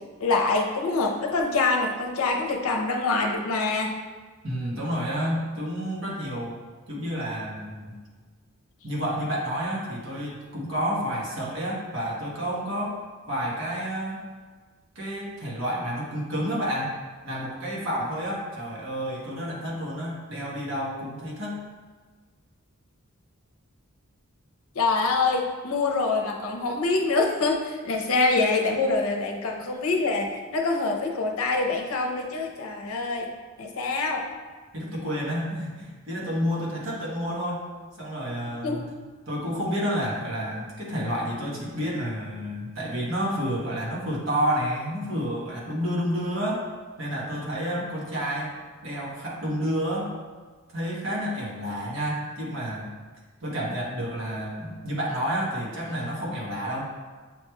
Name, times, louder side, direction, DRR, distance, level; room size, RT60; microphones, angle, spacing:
voice 1, 0.2-3.9 24.7-33.3 33.6-34.3 38.4-38.9, left 3 dB, 75° left, 2 dB, 0.6 m, -25 dB
voice 2, 4.4-6.6 6.9-8.0 8.8-13.0 13.3-14.3 14.9-16.9 17.2-21.6 34.7-37.7 38.0-38.8 39.3-46.6 47.0-48.5 48.8-50.1 50.7-52.9 53.4-56.9, equal, 60° right, -4 dB, 1.2 m, -30 dB
7.4 x 3.1 x 2.3 m, 1.4 s
head